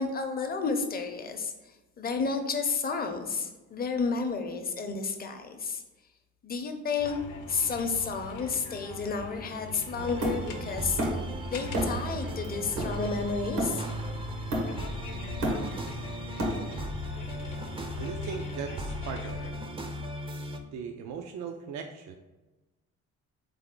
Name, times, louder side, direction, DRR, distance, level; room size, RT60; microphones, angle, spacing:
voice 1, 0.0-1.5 2.0-5.8 6.4-7.2 7.5-11.0 11.5-13.9, left 4 dB, 30° left, 5 dB, 0.6 m, -31 dB
sound 1, 7.0-19.5, left 4 dB, 80° left, 0.7 m, -42 dB
sound 2, 10.0-20.6, right 1 dB, 20° right, 0.5 m, -37 dB
Hammer, 10.2-11.3 11.7-12.1 12.4-14.0 14.5-15.0 15.2-16.9, equal, 85° right, 1.2 m, -31 dB
voice 2, 17.9-19.5 20.7-22.2, right 6 dB, 70° right, 4 dB, 0.5 m, -38 dB
3.8 x 3.4 x 3.7 m, 1.1 s
cardioid pair, 90°, 30 cm